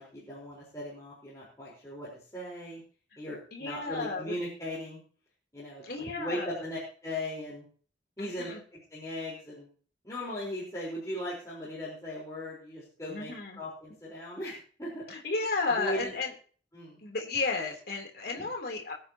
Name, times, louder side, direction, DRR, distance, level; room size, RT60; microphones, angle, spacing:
voice 1, 0.0-2.8 3.2-5.0 5.5-7.7 8.2-9.7 10.0-15.1 15.6-16.1 16.7-17.0 18.3-18.5, left 1 dB, 20° left, -7 dB, 4.3 m, -38 dB
voice 2, 3.5-4.3 5.8-6.6 8.2-8.6 13.1-13.6 15.1-16.3 17.0-18.9, left 3 dB, 55° left, 1 dB, 3.4 m, -33 dB
22.5 x 9.0 x 3.0 m, 0.41 s
head